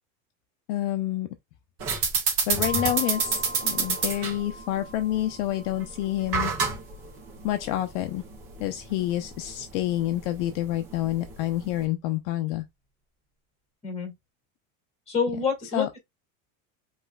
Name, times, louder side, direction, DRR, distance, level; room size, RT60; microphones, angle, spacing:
voice 1, 0.7-1.3 2.5-6.5 7.4-8.2 8.6-12.6 15.7-15.9, left 14 dB, 55° left, 0.6 m, -28 dB
sound 1, 1.8-11.8, right 5 dB, 35° right, 1.4 m, -30 dB
sound 2, 2.6-7.0, equal, 10° right, 1.3 m, -41 dB
voice 2, 15.1-16.0, left 5 dB, 15° left, 1.9 m, -27 dB
5.4 x 3.2 x 2.3 m
supercardioid pair, 160°, 41 cm